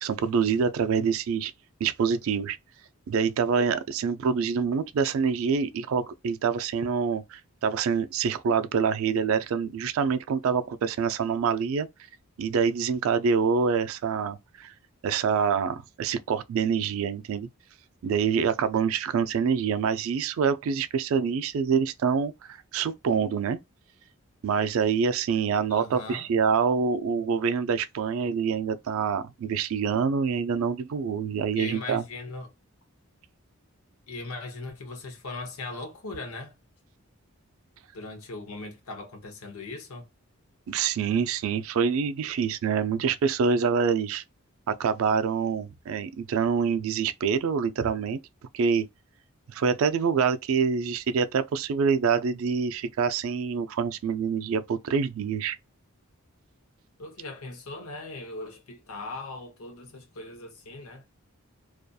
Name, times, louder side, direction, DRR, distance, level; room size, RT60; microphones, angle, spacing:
voice 1, 0.0-1.5 1.8-2.6 3.1-11.9 12.4-14.7 15.0-17.5 18.0-23.6 24.4-32.0 40.7-44.2 44.7-48.2 48.5-48.9 49.5-55.6, right 6 dB, 70° right, 0.3 m, -26 dB
voice 2, 25.7-26.3 31.5-32.5 34.1-36.6 37.9-40.1 57.0-61.0, left 3 dB, 85° left, 0.8 m, -39 dB
2.6 x 2.3 x 2.2 m
head